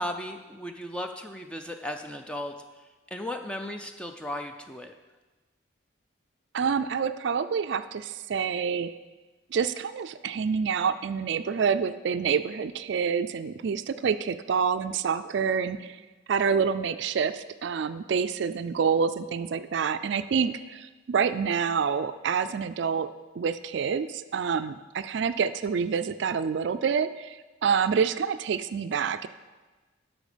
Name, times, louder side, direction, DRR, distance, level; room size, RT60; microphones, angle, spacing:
voice 1, 0.0-2.6 3.1-4.9, left 1 dB, 5° left, 5 dB, 0.4 m, -35 dB
voice 2, 6.5-8.9 9.5-16.0 16.3-23.1 23.4-27.4 27.6-29.3, right 6 dB, 60° right, 12 dB, 0.4 m, -27 dB
11.5 x 6.2 x 5.1 m, 1.2 s
head